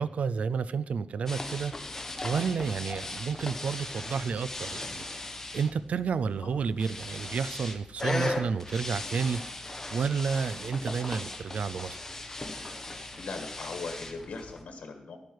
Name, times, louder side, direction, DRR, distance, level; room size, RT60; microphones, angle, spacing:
voice 1, 0.0-1.7 2.2-5.1 5.5-9.4 9.9-12.0, right 6 dB, 75° right, 16 dB, 0.4 m, -30 dB
sound 1, 1.3-14.6, left 2 dB, 20° left, 1.1 m, -38 dB
voice 2, 13.2-15.2, left 4 dB, 80° left, 5 dB, 1.6 m, -39 dB
11.5 x 9.2 x 4.7 m, 0.81 s
wide cardioid pair, 160°, 2 cm